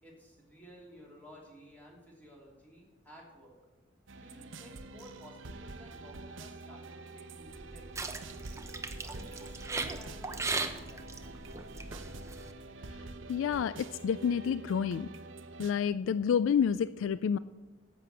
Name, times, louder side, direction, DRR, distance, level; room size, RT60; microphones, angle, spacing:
voice 1, 0.0-3.5 4.2-8.6 9.0-11.4, equal, 10° left, -3 dB, 3.1 m, -54 dB
sound 1, 4.1-15.7, right 3 dB, 80° right, 0.8 m, -47 dB
sound 2, 7.5-12.5, right 3 dB, 15° right, 0.7 m, -38 dB
voice 2, 13.3-15.1 15.6-17.4, left 7 dB, 85° left, 16 dB, 0.3 m, -29 dB
11.0 x 7.7 x 6.8 m, 1.2 s
head